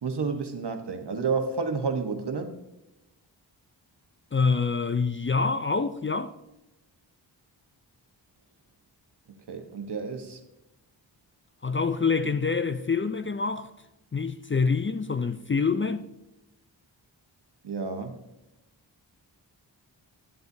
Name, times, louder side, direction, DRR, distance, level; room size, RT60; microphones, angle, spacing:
voice 1, 0.0-2.5 9.5-10.4 17.6-18.2, right 5 dB, 60° right, 1.3 m, -30 dB
voice 2, 4.3-6.3 11.6-13.7 14.1-16.1, left 4 dB, 25° left, 0.5 m, -26 dB
12.5 x 7.8 x 2.7 m
cardioid pair, 40°, 45 cm